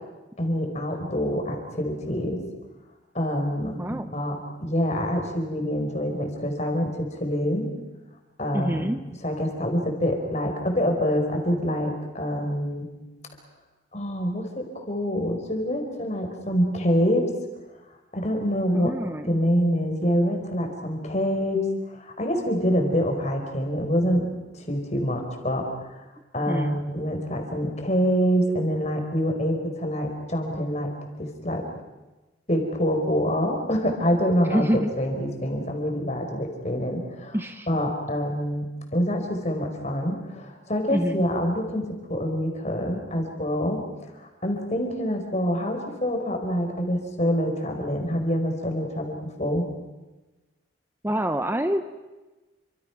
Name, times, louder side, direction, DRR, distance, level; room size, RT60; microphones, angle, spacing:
voice 1, 0.4-2.4 3.1-4.3 4.6-7.7 8.4-12.9 13.9-17.3 18.1-18.9 19.3-24.3 24.5-25.7 26.3-31.6 32.5-34.7 35.0-37.4 37.7-43.8 44.2-49.7, equal, 35° left, 3 dB, 4.7 m, -26 dB
voice 2, 3.8-4.1 8.5-9.0 18.7-19.4 26.5-26.8 34.5-34.9 37.3-37.7 40.9-41.2 51.0-51.9, equal, 10° right, 8 dB, 0.8 m, -26 dB
29.5 x 25.5 x 6.0 m, 1.2 s
head